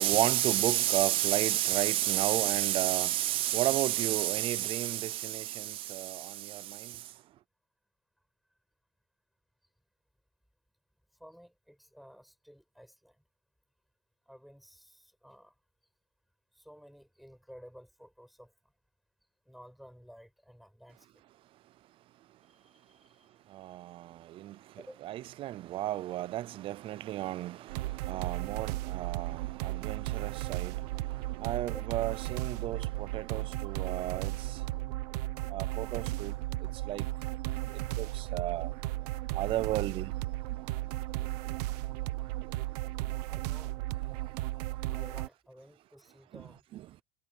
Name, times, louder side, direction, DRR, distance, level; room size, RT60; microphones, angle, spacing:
voice 1, 0.0-6.9 23.5-24.6 25.0-27.8 28.1-30.7 31.4-34.3 35.5-36.3 36.9-37.0 38.0-38.7 39.4-40.1 46.3-46.4 46.7-46.8, right 14 dB, 25° right, 0.4 m, -31 dB
voice 2, 11.2-13.2 14.3-15.5 16.6-18.5 19.5-21.1 22.6-23.3 24.8-25.0 31.6-31.9 43.3-43.8 44.0-44.3 44.9-46.6, equal, ahead, 5.7 m, -54 dB
sound 1, 27.7-45.3, right 18 dB, 80° right, 1.1 m, -35 dB
supercardioid pair, 160°, 20 cm